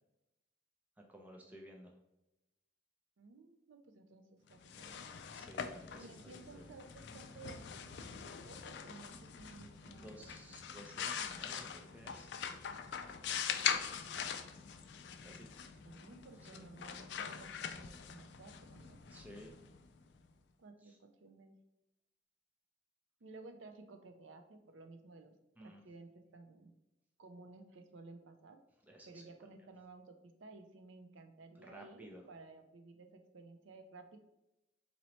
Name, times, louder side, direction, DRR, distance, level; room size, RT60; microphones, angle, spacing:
voice 1, 1.1-1.9 5.3-6.6 9.8-12.3 15.2-15.5 16.5-16.6 19.1-19.5 20.8-21.0 25.6-25.8 28.9-29.2 31.6-32.2, equal, 10° right, 1 dB, 0.4 m, -55 dB
voice 2, 3.2-5.1 6.0-7.6 8.4-10.3 14.1-14.3 15.2-19.0 20.6-21.6 23.2-25.3 25.6-26.7 27.2-28.6 29.1-30.2 30.4-34.2, right 3 dB, 80° right, 7 dB, 0.5 m, -55 dB
sound 1, 4.5-20.2, left 7 dB, 65° left, 0.3 m, -43 dB
4.0 x 3.0 x 3.0 m, 0.92 s
head